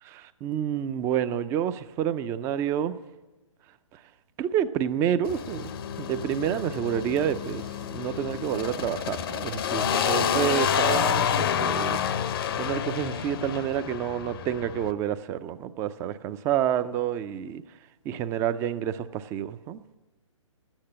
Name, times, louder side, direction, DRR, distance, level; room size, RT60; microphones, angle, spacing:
voice 1, 0.1-3.0 4.4-5.7 6.0-7.6 7.9-17.6 18.1-19.8, right 10 dB, 15° right, 13 dB, 0.4 m, -29 dB
sound 1, 5.2-14.9, left 8 dB, 45° left, 0.7 m, -28 dB
11.5 x 8.9 x 10.0 m, 1.1 s
figure-of-eight pair, 135°, 17 cm